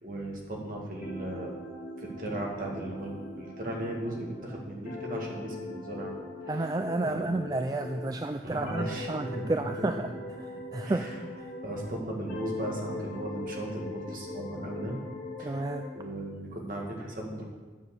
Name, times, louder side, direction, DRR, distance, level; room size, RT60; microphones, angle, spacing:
voice 1, 0.0-1.5 2.0-6.2 7.1-7.3 8.4-9.9 10.8-11.2 11.6-15.0 15.4-15.7 15.9-17.4, right 1 dB, 50° right, -1 dB, 2.1 m, -36 dB
sound 1, 1.0-8.2 8.6-12.0 12.3-15.9, left 2 dB, 45° left, 2.4 m, -41 dB
voice 2, 6.5-10.1 10.4-11.1 11.4-11.5 15.4-15.9, right 2 dB, 20° right, 6 dB, 0.3 m, -31 dB
9.5 x 7.5 x 6.6 m, 1.4 s
head